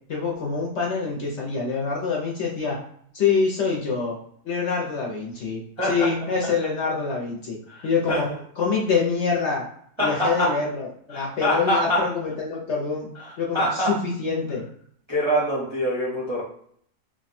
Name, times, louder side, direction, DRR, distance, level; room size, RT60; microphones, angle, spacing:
voice 1, 0.1-2.8 3.1-4.2 4.4-5.6 5.9-7.6 7.8-9.6 10.0-13.1 13.4-14.7, left 5 dB, 55° left, -2 dB, 0.9 m, -25 dB
voice 2, 5.8-6.1 7.7-8.2 10.0-10.5 11.1-12.0 13.2-13.3 13.5-13.9 15.1-16.4, equal, 30° right, -6 dB, 0.6 m, -24 dB
2.6 x 2.3 x 4.1 m, 0.64 s
omnidirectional pair, 1.6 m